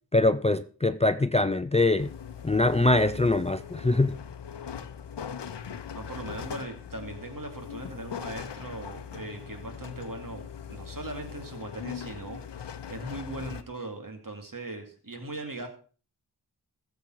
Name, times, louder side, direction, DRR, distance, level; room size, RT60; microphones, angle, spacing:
voice 1, 0.1-2.1 2.4-4.2, left 2 dB, 15° left, 0.4 m, -23 dB
sound 1, 2.0-13.6, left 7 dB, 85° left, 0.8 m, -40 dB
voice 2, 5.9-15.7, right 2 dB, 50° right, 2.5 m, -39 dB
14.5 x 7.4 x 4.6 m
wide cardioid pair, 40°, 41 cm